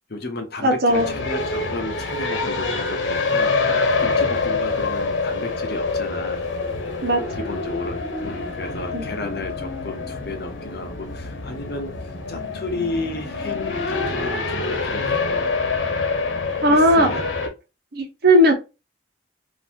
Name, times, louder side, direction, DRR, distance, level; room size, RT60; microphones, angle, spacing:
voice 1, 0.1-3.6 4.0-6.5 7.3-15.2 16.7-17.2, left 2 dB, 60° left, 4 dB, 0.9 m, -33 dB
voice 2, 0.6-1.1 7.0-7.2 8.9-9.1 16.6-17.1 17.9-18.5, equal, 55° right, 4 dB, 1.0 m, -16 dB
sound 1, 0.9-17.5, left 3 dB, 90° left, 0.9 m, -26 dB
3.9 x 2.7 x 2.8 m, 0.28 s
head